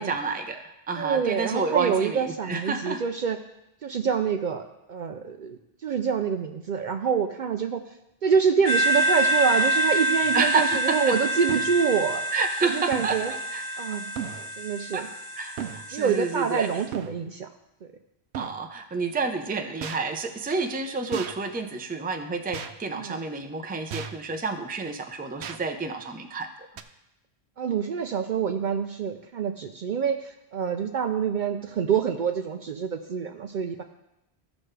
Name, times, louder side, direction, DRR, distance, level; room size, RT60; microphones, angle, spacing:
voice 1, 0.0-3.0 10.3-11.1 12.3-13.6 14.9-15.1 15.4-16.7 18.3-26.5, right 4 dB, 10° right, 5 dB, 0.5 m, -29 dB
voice 2, 1.0-3.4 3.8-7.8 8.2-12.2 12.6-13.3 13.8-14.1 14.6-15.1 15.9-17.5 17.8-17.9 22.9-23.2 27.6-33.8, right 6 dB, 60° right, 6 dB, 0.6 m, -26 dB
sound 1, 8.7-16.8, equal, 45° left, 1.1 m, -27 dB
sound 2, 10.2-10.3 11.5-11.8 12.9-13.4 14.2-14.5 15.6-15.9 16.9-17.2 18.3-18.6 19.8-20.0 21.1-21.4 22.5-22.8 23.9-24.2 25.4-25.6 26.8-26.9, right 8 dB, 85° right, 0.9 m, -35 dB
14.5 x 6.1 x 3.3 m, 0.89 s
omnidirectional pair, 1.1 m